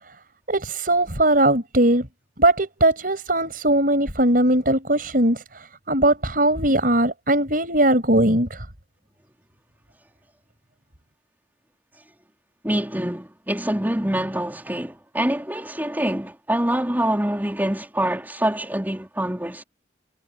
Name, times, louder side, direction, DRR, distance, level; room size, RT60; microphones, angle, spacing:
voice 1, 0.5-2.1 2.4-8.7, right 1 dB, 50° right, 6.4 m, -20 dB
voice 2, 12.6-19.6, right 1 dB, 10° right, 3.7 m, -25 dB
head